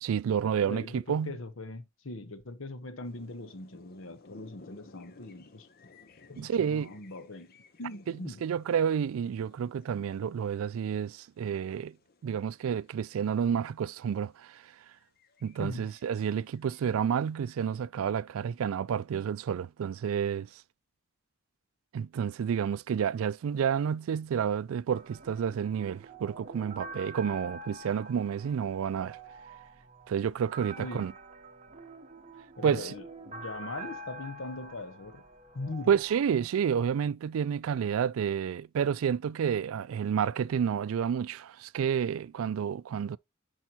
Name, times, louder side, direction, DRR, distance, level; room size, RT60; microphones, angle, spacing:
voice 1, 0.0-1.4 6.4-6.9 8.4-12.0 12.2-14.6 15.4-20.5 21.9-29.2 30.1-31.1 32.6-32.9 35.9-43.2, right 7 dB, 80° right, 0.3 m, -30 dB
voice 2, 0.6-5.7 6.3-8.4 15.6-15.9 30.8-31.1 32.6-35.2 35.5-36.0, left 2 dB, 70° left, 1.0 m, -41 dB
sound 1, 3.0-13.5 14.0-14.2 14.6-17.2, left 3 dB, 45° left, 0.7 m, -58 dB
sound 2, 24.9-36.2, right 2 dB, 35° right, 0.9 m, -46 dB
10.5 x 4.6 x 2.8 m
head